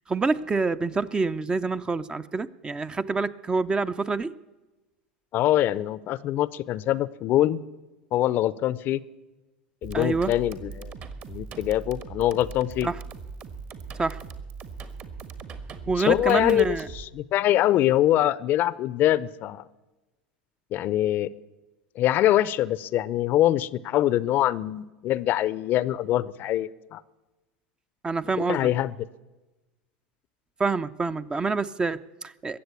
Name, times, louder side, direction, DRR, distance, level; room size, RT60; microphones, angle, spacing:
voice 1, 0.1-4.4 9.9-10.3 12.8-13.0 14.0-14.2 15.9-16.9 28.0-28.7 30.6-32.6, right 4 dB, 20° right, 14 dB, 0.5 m, -27 dB
voice 2, 5.3-7.6 8.1-9.0 9.8-10.9 11.3-12.9 16.0-19.6 20.7-21.3 22.0-27.0 28.5-28.9, left 13 dB, 45° left, 19 dB, 0.5 m, -24 dB
sound 1, 9.8-17.0, right 5 dB, 45° right, 1.5 m, -40 dB
21.5 x 7.8 x 8.2 m, 1.1 s
hypercardioid pair, 85°, 5 cm